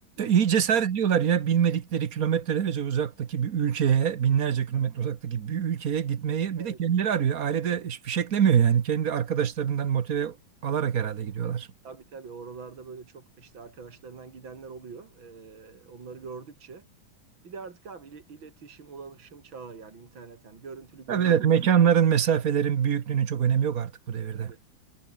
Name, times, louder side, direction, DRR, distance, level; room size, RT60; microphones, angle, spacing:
voice 1, 0.2-10.4 10.6-11.7 21.1-24.5, right 8 dB, 50° right, 1.4 m, -24 dB
voice 2, 11.8-16.9 17.4-21.5 24.4-24.6, right 5 dB, 70° right, 3.7 m, -44 dB
omnidirectional pair, 2.3 m